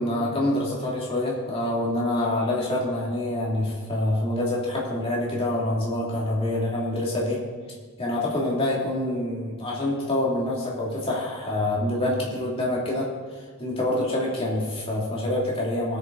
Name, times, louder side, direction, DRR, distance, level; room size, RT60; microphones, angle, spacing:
voice 1, 0.0-7.4 8.0-13.1 13.6-16.0, left 1 dB, 25° left, -5 dB, 2.7 m, -26 dB
19.5 x 6.8 x 4.0 m, 1.5 s
head